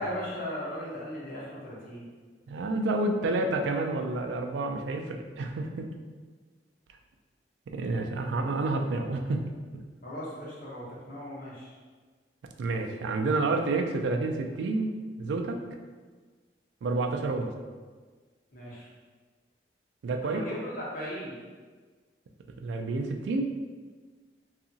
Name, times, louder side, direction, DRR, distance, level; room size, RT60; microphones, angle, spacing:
voice 1, 0.0-2.1 10.0-11.7 17.0-17.1 18.5-18.9 20.2-21.4, equal, 50° left, -6 dB, 0.8 m, -37 dB
voice 2, 2.5-5.9 7.7-9.4 12.6-14.9 15.2-15.6 16.8-17.5 20.0-20.4 22.6-23.4, right 2 dB, 85° right, 4 dB, 0.3 m, -29 dB
2.8 x 2.4 x 2.6 m, 1.4 s
head